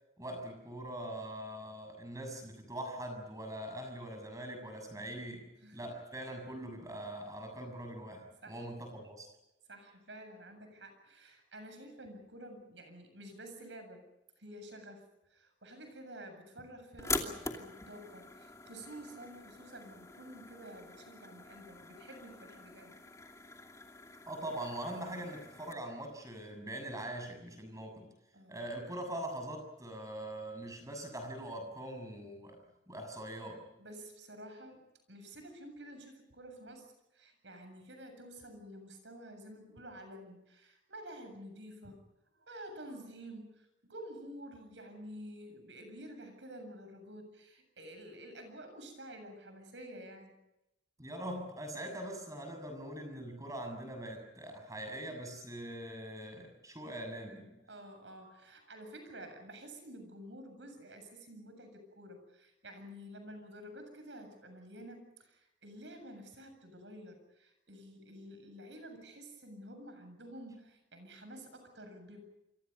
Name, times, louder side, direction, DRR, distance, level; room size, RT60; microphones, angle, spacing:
voice 1, 0.2-9.3 24.3-28.1 28.5-32.6 32.9-33.7 51.0-57.6, right 1 dB, 20° right, 5 dB, 6.7 m, -42 dB
voice 2, 9.7-14.0 14.4-23.0 28.3-28.6 32.6-32.8 33.8-42.0 42.3-50.3 57.7-72.2, right 1 dB, 85° right, 7 dB, 7.5 m, -50 dB
sound 1, 17.0-25.7, left 3 dB, 20° left, 2.7 m, -44 dB
28.5 x 25.0 x 5.5 m, 0.90 s
head